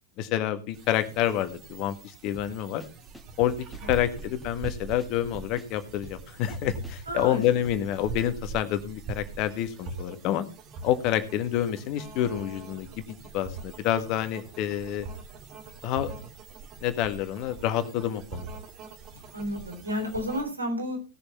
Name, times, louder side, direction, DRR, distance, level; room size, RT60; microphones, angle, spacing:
voice 1, 0.2-2.8 3.4-3.5 3.9-10.4 10.8-15.1 15.8-16.1 16.8-18.5, left 11 dB, 40° left, 10 dB, 1.6 m, -28 dB
sound 1, 0.7-20.4, right 4 dB, 35° right, 1.9 m, -42 dB
sound 2, 2.3-7.9, right 2 dB, 5° left, 1.7 m, -48 dB
voice 2, 7.1-7.4 19.3-21.0, equal, 80° right, 3 dB, 3.7 m, -31 dB
17.5 x 6.9 x 4.3 m, 0.33 s
figure-of-eight pair, 90°, 0 cm